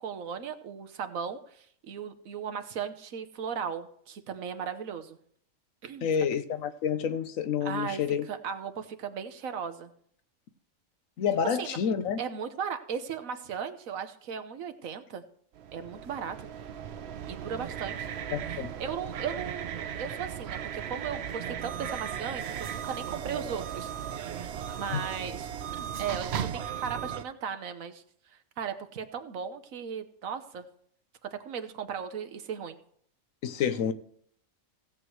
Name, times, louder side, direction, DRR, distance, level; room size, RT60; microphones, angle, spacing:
voice 1, 0.0-5.2 5.8-6.1 7.6-9.9 11.6-11.8 12.2-15.2 15.7-16.5 17.3-18.1 18.5-23.9 24.2-30.6 31.2-32.8, right 7 dB, 80° right, 1.3 m, -37 dB
voice 2, 6.0-8.3 11.2-12.2 18.3-18.7 24.9-25.0 33.4-33.9, left 7 dB, 80° left, 1.2 m, -29 dB
sound 1, 15.5-27.2, right 9 dB, 60° right, 0.8 m, -36 dB
16.5 x 7.8 x 3.1 m
omnidirectional pair, 1.4 m